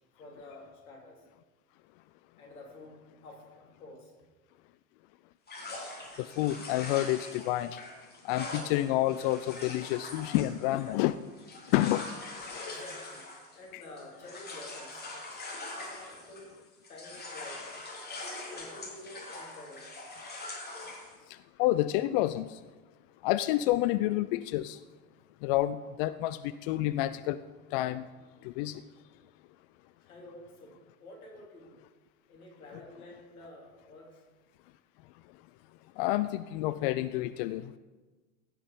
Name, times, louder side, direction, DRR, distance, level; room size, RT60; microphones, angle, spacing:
voice 1, 0.2-1.2 2.4-4.1 12.5-13.3 13.5-15.0 15.7-16.5 16.9-17.7 18.5-19.9 30.0-31.7 32.3-34.2, left 2 dB, 75° left, -1 dB, 3.4 m, -49 dB
sound 1, 5.5-16.6 16.8-21.2, left 2 dB, 20° left, 3.0 m, -43 dB
voice 2, 6.2-7.8 8.2-11.2 11.7-12.1 13.7-13.8 21.6-22.6 23.2-24.8 25.4-27.4 27.7-28.1 28.4-28.8 36.0-37.8, left 15 dB, 45° left, 14 dB, 0.4 m, -29 dB
16.0 x 6.1 x 5.3 m, 1.3 s
figure-of-eight pair, 85°, 43 cm